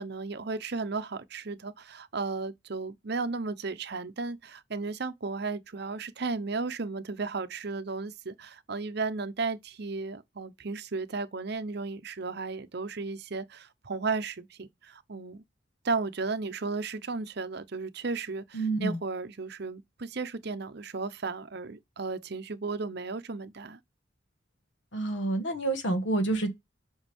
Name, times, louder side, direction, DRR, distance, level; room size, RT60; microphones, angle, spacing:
voice 1, 0.0-15.4 15.8-23.8, right 4 dB, 60° right, 0.8 m, -34 dB
voice 2, 18.5-19.0 24.9-26.5, right 2 dB, 70° left, 1.5 m, -28 dB
7.9 x 5.3 x 3.5 m
head